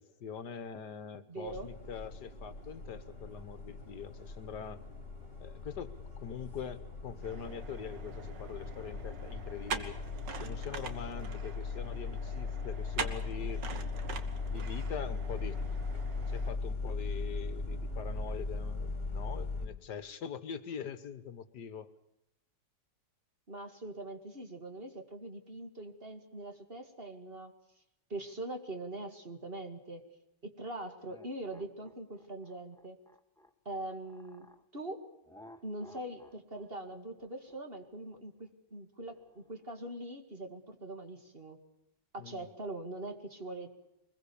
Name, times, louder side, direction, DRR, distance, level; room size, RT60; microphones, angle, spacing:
voice 1, 0.0-4.8 5.4-5.9 6.2-10.0 10.4-13.6 14.5-15.6 16.3-21.9 42.2-42.5, left 7 dB, 70° left, 13 dB, 1.7 m, -43 dB
voice 2, 1.3-1.7 23.5-27.5 28.1-30.0 30.4-33.0 33.7-34.5 34.7-35.1 35.6-41.6 42.1-43.7, right 2 dB, 30° right, 5 dB, 2.4 m, -42 dB
sound 1, 1.5-19.7, left 4 dB, 40° left, 3.9 m, -39 dB
sound 2, 7.2-16.5, right 5 dB, 80° right, 2.2 m, -44 dB
sound 3, 31.0-34.6 35.2-39.8, left 1 dB, ahead, 1.4 m, -58 dB
24.0 x 21.5 x 7.0 m, 0.86 s
omnidirectional pair, 1.9 m